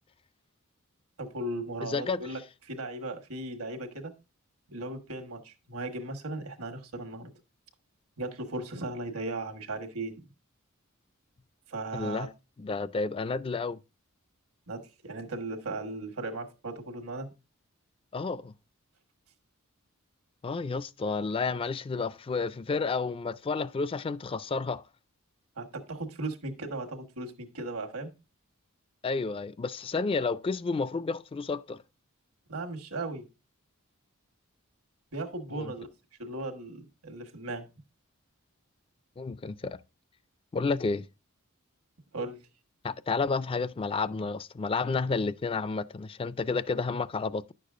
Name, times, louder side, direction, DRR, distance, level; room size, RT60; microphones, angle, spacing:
voice 1, 1.2-2.4 2.7-4.1 4.7-7.3 8.2-10.3 11.7-12.3 14.7-17.3 25.6-28.1 32.5-33.3 35.1-35.9 36.2-37.7 42.1-42.4, right 2 dB, 80° right, 1.3 m, -37 dB
voice 2, 1.8-2.2 11.9-12.3 12.6-13.8 18.1-18.5 20.4-24.8 29.0-31.8 35.5-35.7 39.2-39.8 40.5-41.1 42.8-47.5, left 4 dB, 25° left, 0.3 m, -31 dB
10.5 x 6.6 x 2.4 m
head